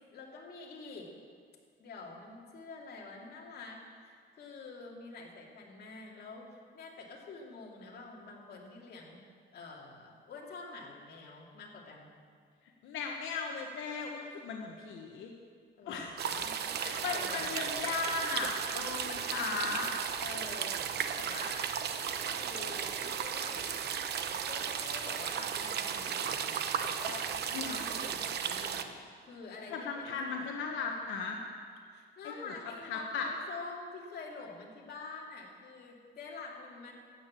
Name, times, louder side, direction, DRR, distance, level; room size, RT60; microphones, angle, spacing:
voice 1, 0.1-1.1 1.8-9.2 9.5-12.1 15.8-17.5 20.2-21.7 22.3-23.8 24.5-27.3 27.6-30.4 31.9-36.9, left 4 dB, 55° left, -2 dB, 2.7 m, -47 dB
voice 2, 12.8-15.3 15.9-16.2 16.8-19.9 27.5-27.8 29.7-31.4 32.4-32.5 32.8-33.3, left 5 dB, 90° left, 1 dB, 1.3 m, -37 dB
sound 1, 16.2-28.8, right 8 dB, 55° right, 0.8 m, -35 dB
13.5 x 9.4 x 7.5 m, 2.1 s
cardioid pair, 155°, 20 cm